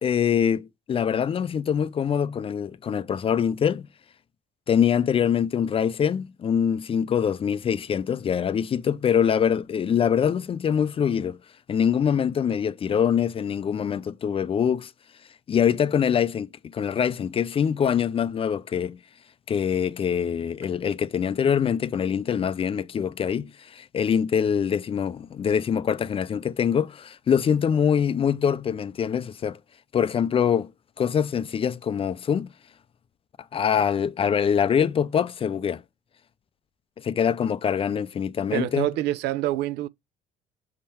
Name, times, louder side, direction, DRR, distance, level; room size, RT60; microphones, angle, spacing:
voice 1, 0.0-3.9 4.7-11.4 11.7-14.9 15.5-19.0 19.5-29.6 29.9-30.7 31.0-32.5 33.5-35.8 37.0-38.9, left 8 dB, 35° left, 0.4 m, -24 dB
voice 2, 38.5-39.9, right 14 dB, 80° right, 0.5 m, -26 dB
6.5 x 3.7 x 4.2 m
cardioid pair, 110°, 17 cm